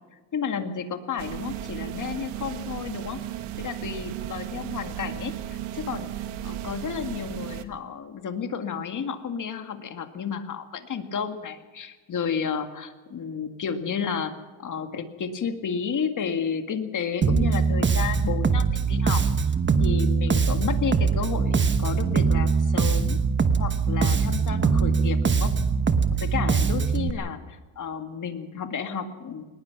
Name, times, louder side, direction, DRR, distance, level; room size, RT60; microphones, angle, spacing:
voice 1, 0.3-3.2 3.6-6.1 6.4-14.3 14.6-19.2 19.8-23.2 23.6-25.5 26.1-29.4, left 6 dB, 40° left, 7 dB, 2.0 m, -32 dB
sound 1, 1.2-7.6, right 12 dB, 90° right, 1.5 m, -35 dB
Bass guitar, 17.2-27.1, right 5 dB, 25° right, 1.1 m, -22 dB
21.5 x 20.0 x 6.0 m, 1.3 s
cardioid pair, 135°, 48 cm